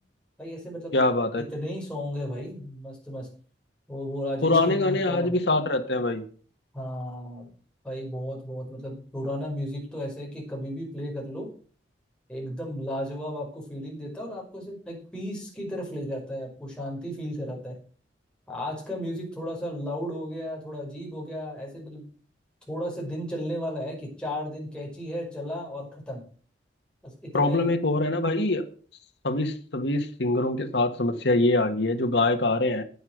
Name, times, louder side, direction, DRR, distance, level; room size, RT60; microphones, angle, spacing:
voice 1, 0.4-1.0 1.5-3.3 3.9-5.3 6.7-7.5 7.8-11.5 12.3-17.7 18.5-22.0 22.7-26.2 27.0-27.8, equal, 5° left, 5.4 m, -34 dB
voice 2, 0.9-1.4 4.4-6.2 27.3-28.7 29.2-32.8, left 2 dB, 65° left, 1.5 m, -24 dB
10.0 x 9.5 x 6.3 m
head